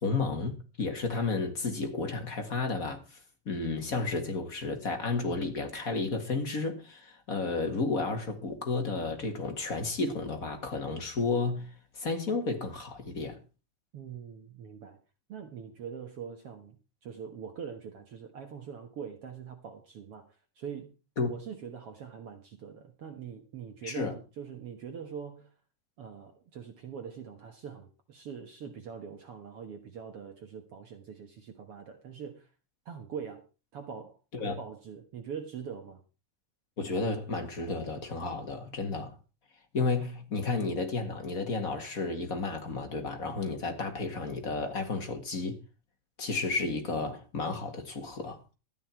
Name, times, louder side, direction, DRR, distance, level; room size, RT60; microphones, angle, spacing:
voice 1, 0.0-3.2 3.5-13.4 21.2-21.3 23.8-24.1 34.4-34.6 36.8-39.2 39.7-45.6 46.2-48.4, left 3 dB, 30° left, 1.8 m, -32 dB
voice 2, 13.9-15.0 15.3-16.8 17.0-21.0 21.2-25.5 26.0-32.5 32.9-33.5 33.7-34.2 34.5-36.0, right 7 dB, 55° right, 2.0 m, -43 dB
13.5 x 10.0 x 4.5 m
omnidirectional pair, 3.7 m